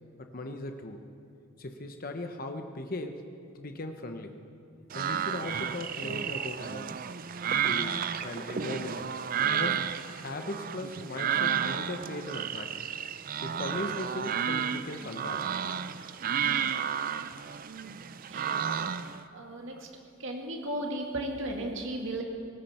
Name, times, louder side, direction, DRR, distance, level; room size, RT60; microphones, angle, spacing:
voice 1, 0.2-1.1 1.6-4.4 4.9-7.0 7.6-9.2 9.5-12.8 13.4-15.6, left 1 dB, 45° left, 5 dB, 0.9 m, -38 dB
sound 1, 4.9-19.2, right 8 dB, 40° right, 0.4 m, -32 dB
voice 2, 18.3-18.8 19.3-19.9 20.2-22.2, right 1 dB, 60° right, 2 dB, 2.2 m, -35 dB
19.5 x 17.0 x 4.4 m, 2.4 s
head